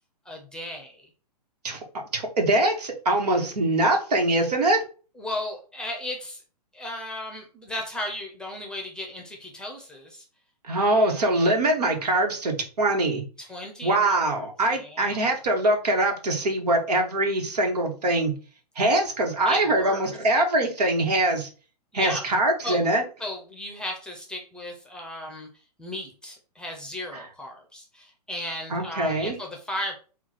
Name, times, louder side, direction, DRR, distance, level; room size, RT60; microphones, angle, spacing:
voice 1, 0.2-1.1 5.2-6.4 6.7-10.2 10.9-11.3 13.4-14.4 14.7-15.3 19.4-20.0 21.9-22.2 22.6-22.8 23.2-25.5 25.8-30.0, left 1 dB, 5° left, 1 dB, 0.8 m, -35 dB
voice 2, 2.1-4.8 10.7-13.2 13.8-18.3 18.7-21.5 21.9-23.0 27.1-27.2 28.7-29.4, right 1 dB, 70° right, 3 dB, 1.4 m, -23 dB
4.4 x 2.5 x 4.2 m, 0.37 s
hypercardioid pair, 125°, 21 cm